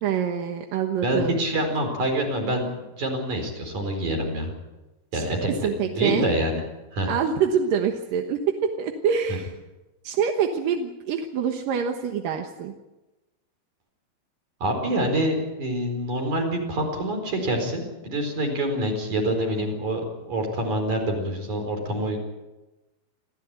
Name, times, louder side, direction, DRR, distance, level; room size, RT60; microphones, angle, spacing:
voice 1, 0.0-1.4 5.1-5.2 5.6-6.3 7.1-9.5 10.0-12.7, right 7 dB, 65° right, 4 dB, 2.5 m, -25 dB
voice 2, 1.0-4.5 5.1-5.5 5.8-6.6 6.9-7.1 14.6-22.2, right 1 dB, 45° right, 3 dB, 5.8 m, -26 dB
27.0 x 15.0 x 9.2 m, 1.1 s
omnidirectional pair, 5.0 m